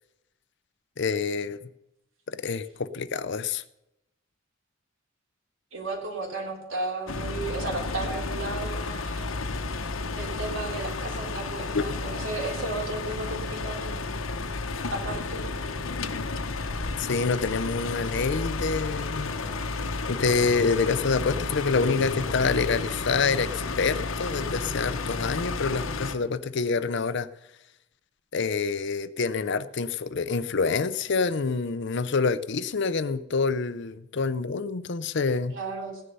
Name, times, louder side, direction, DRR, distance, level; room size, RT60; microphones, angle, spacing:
voice 1, 1.0-1.7 2.3-3.6 11.7-11.8 17.0-19.4 20.1-27.3 28.3-35.5, left 4 dB, 60° left, 15 dB, 0.6 m, -27 dB
voice 2, 5.7-9.3 10.1-14.0 14.9-15.4 35.5-36.0, right 2 dB, 75° right, 1 dB, 3.4 m, -34 dB
sound 1, 7.1-26.2, left 3 dB, 85° left, 1.0 m, -32 dB
16.5 x 10.0 x 5.5 m, 0.90 s
head